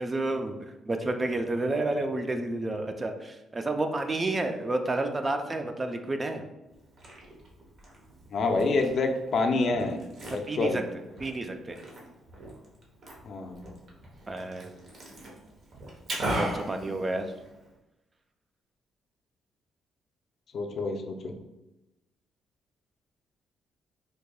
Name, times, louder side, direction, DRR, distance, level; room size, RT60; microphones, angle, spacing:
voice 1, 0.0-6.4 10.3-10.8 11.2-11.8 14.3-14.8 16.2-17.3, right 2 dB, 25° right, 6 dB, 0.4 m, -30 dB
Liquid, 6.7-17.7, right 1 dB, 60° right, 0.9 m, -39 dB
voice 2, 8.3-10.0 10.3-10.9 13.2-13.6 20.5-21.3, left 3 dB, 55° left, 4 dB, 0.4 m, -27 dB
4.5 x 2.7 x 2.2 m, 0.99 s
cardioid pair, 90°, 0 cm